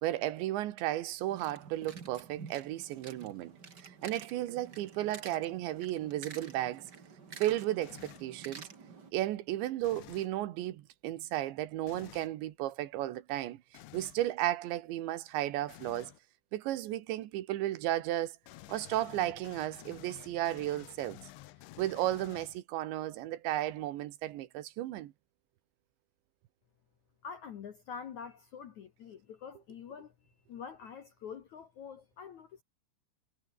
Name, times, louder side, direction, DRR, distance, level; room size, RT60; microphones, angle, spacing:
voice 1, 0.0-3.6 3.8-6.9 7.4-8.7 9.1-13.6 13.9-16.1 16.5-18.4 18.7-21.2 21.8-25.1, right 14 dB, 80° right, 3.6 m, -34 dB
sound 1, 1.3-9.1, right 5 dB, 35° right, 1.8 m, -50 dB
sound 2, 7.8-8.4 9.8-10.4 11.9-12.3 13.7-14.2 15.7-16.2 18.4-22.8, left 17 dB, 85° left, 3.3 m, -52 dB
voice 2, 27.2-30.1 30.5-32.6, left 6 dB, 60° left, 2.0 m, -46 dB
omnidirectional pair, 5.3 m